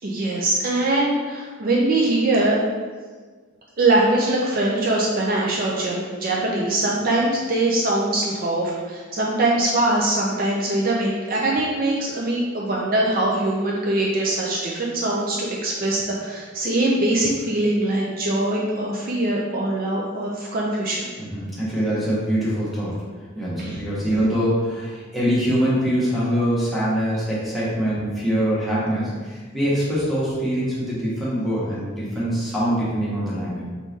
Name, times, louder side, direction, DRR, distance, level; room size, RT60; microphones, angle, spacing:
voice 1, 0.0-2.6 3.8-21.1 23.6-23.8, right 2 dB, 45° right, -3 dB, 0.5 m, -22 dB
voice 2, 21.2-23.0 23.3-33.6, equal, ahead, -10 dB, 1.3 m, -23 dB
4.0 x 3.6 x 3.1 m, 1.5 s
head